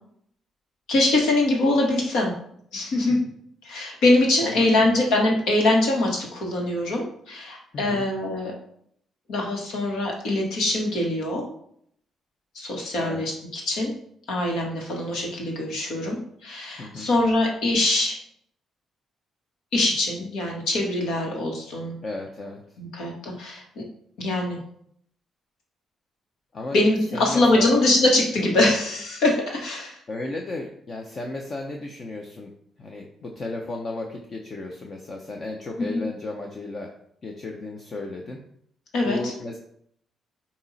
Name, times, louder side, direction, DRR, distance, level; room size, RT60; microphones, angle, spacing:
voice 1, 0.9-2.3 2.7-3.2 3.6-8.5 9.3-11.4 12.6-13.9 14.3-18.2 19.7-22.0 22.8-23.8 24.2-24.6 26.7-30.0 35.9-36.0 38.9-39.3, left 2 dB, 80° left, 0 dB, 1.7 m, -23 dB
voice 2, 4.4-5.0 7.7-8.0 13.0-13.2 16.8-17.1 22.0-22.6 26.5-26.8 27.1-27.7 30.1-32.5 32.8-36.9 37.2-38.4 39.0-39.6, left 2 dB, 40° left, 1 dB, 0.8 m, -34 dB
8.7 x 3.0 x 4.2 m, 0.69 s
cardioid pair, 90°, 0 cm